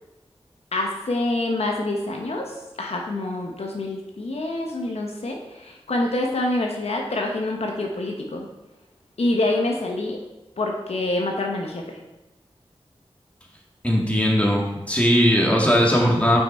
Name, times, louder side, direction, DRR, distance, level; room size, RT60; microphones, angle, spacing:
voice 1, 0.7-8.5 9.2-10.2 10.6-11.8, left 2 dB, 80° left, 1 dB, 0.9 m, -26 dB
voice 2, 13.8-16.4, equal, 10° left, -2 dB, 1.8 m, -19 dB
5.9 x 5.7 x 4.3 m, 1.0 s
wide cardioid pair, 55°, 10 cm